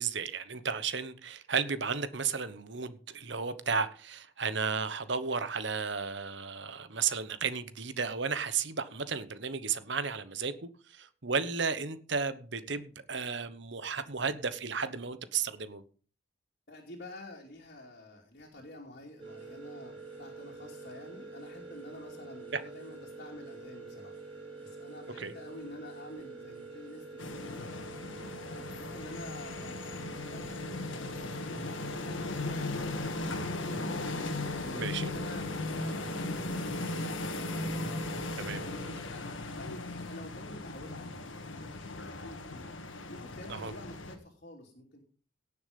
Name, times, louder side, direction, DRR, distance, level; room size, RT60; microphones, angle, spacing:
voice 1, 0.0-15.8 22.5-22.6 25.2-25.3 34.7-35.1 38.4-38.7 43.5-43.7, right 5 dB, 60° right, 1.1 m, -33 dB
voice 2, 16.7-27.7 28.2-34.0 34.6-41.2 41.5-42.7 43.1-45.0, left 1 dB, 45° left, 2.9 m, -49 dB
sound 1, 19.2-38.9, right 3 dB, 25° right, 4.5 m, -46 dB
sound 2, 27.2-44.2, left 2 dB, 70° left, 1.8 m, -37 dB
18.0 x 7.1 x 5.3 m
head